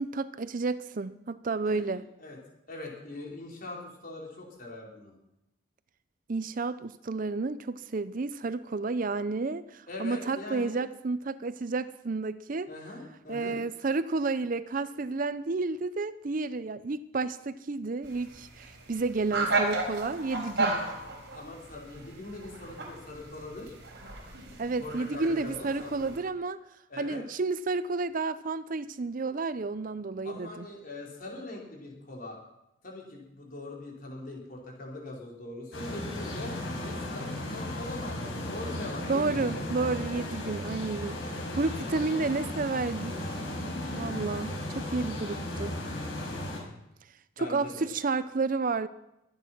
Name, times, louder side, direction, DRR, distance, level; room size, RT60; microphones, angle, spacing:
voice 1, 0.0-2.0 6.3-12.7 13.3-20.7 24.6-26.6 27.0-30.7 39.1-43.2 43.9-45.7 47.4-48.9, right 3 dB, 40° right, 14 dB, 0.5 m, -31 dB
voice 2, 1.6-2.4 2.7-5.1 9.9-10.8 12.7-13.6 21.3-23.8 24.8-25.9 26.9-27.2 30.2-32.4 32.8-36.5 36.8-39.7 44.0-44.5 47.4-47.9, left 2 dB, 45° left, -2 dB, 4.7 m, -42 dB
sound 1, 18.0-26.2, right 2 dB, 55° right, 4.2 m, -34 dB
sound 2, 35.7-46.6, left 1 dB, 75° left, 5.4 m, -35 dB
23.5 x 9.4 x 6.0 m, 0.86 s
head